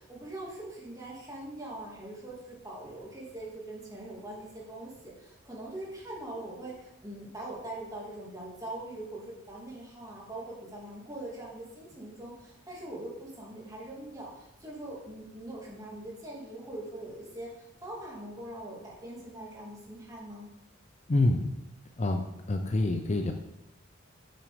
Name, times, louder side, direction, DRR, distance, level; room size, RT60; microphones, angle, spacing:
voice 1, 0.0-17.5 17.8-20.5, right 1 dB, 20° right, -4 dB, 2.4 m, -42 dB
voice 2, 21.1-21.5 22.0-22.2 22.5-23.3, left 2 dB, 35° left, 6 dB, 0.5 m, -26 dB
7.1 x 6.1 x 5.1 m, 0.86 s
head